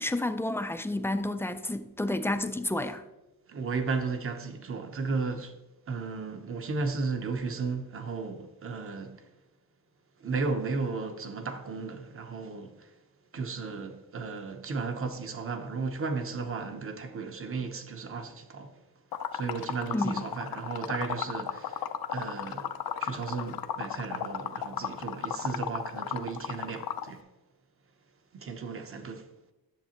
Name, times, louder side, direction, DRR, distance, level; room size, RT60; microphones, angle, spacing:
voice 1, 0.0-3.0 19.9-20.2, left 1 dB, 5° left, 0.3 m, -30 dB
voice 2, 3.5-5.6 5.9-9.3 10.2-12.9 13.3-18.8 19.3-22.7 23.0-27.2 28.3-29.3, right 4 dB, 40° right, 0.8 m, -34 dB
Liquid, 19.1-27.1, left 9 dB, 80° left, 0.6 m, -34 dB
10.5 x 7.3 x 2.9 m
wide cardioid pair, 145°, 35 cm